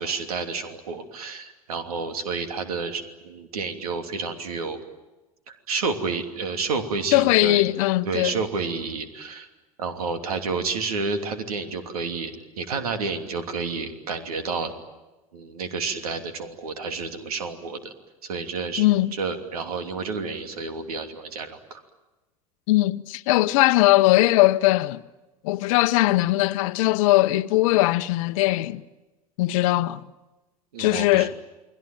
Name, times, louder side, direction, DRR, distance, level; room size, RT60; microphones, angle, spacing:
voice 1, 0.0-4.8 5.5-7.6 8.0-9.5 9.8-14.7 15.3-17.9 18.2-18.8 19.1-21.8 30.7-31.3, right 4 dB, 75° right, 3.0 m, -30 dB
voice 2, 7.1-8.3 18.8-19.1 22.7-25.0 25.4-28.8 29.4-30.0 30.8-31.3, left 18 dB, 60° left, 0.8 m, -20 dB
29.5 x 21.0 x 9.1 m
hypercardioid pair, 80°, 19 cm